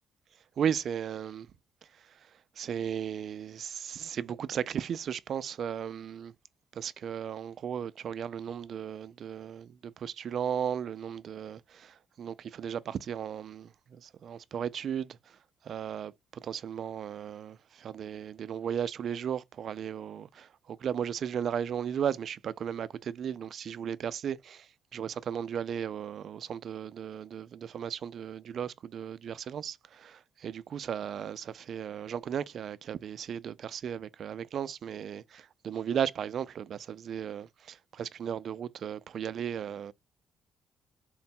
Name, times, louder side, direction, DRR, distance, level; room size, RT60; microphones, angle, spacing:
voice 1, 0.6-1.5 2.6-6.3 6.7-15.4 15.6-39.9, right 8 dB, 60° right, 0.3 m, -35 dB
3.8 x 2.2 x 4.1 m
cardioid pair, 90°, 0 cm